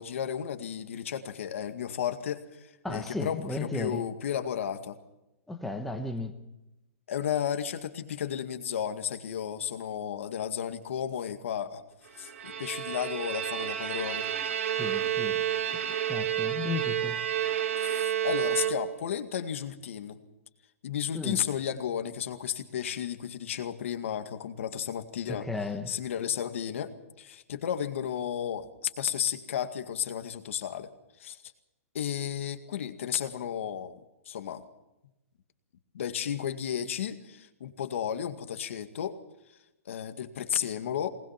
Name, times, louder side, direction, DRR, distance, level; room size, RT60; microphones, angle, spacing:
voice 1, 0.0-5.0 7.1-11.8 12.2-14.3 17.8-20.2 20.8-25.5 25.9-30.9 31.2-31.4 31.9-34.0 34.3-34.6 35.9-39.2 39.9-41.1, left 9 dB, 60° left, 2.0 m, -33 dB
voice 2, 2.8-4.0 5.5-6.4 14.7-15.4 15.7-17.2 21.1-21.4 25.3-26.0, left 3 dB, ahead, 1.1 m, -35 dB
Bowed string instrument, 12.2-19.2, right 10 dB, 65° right, 2.7 m, -30 dB
23.0 x 20.0 x 5.9 m
hypercardioid pair, 175°, 8 cm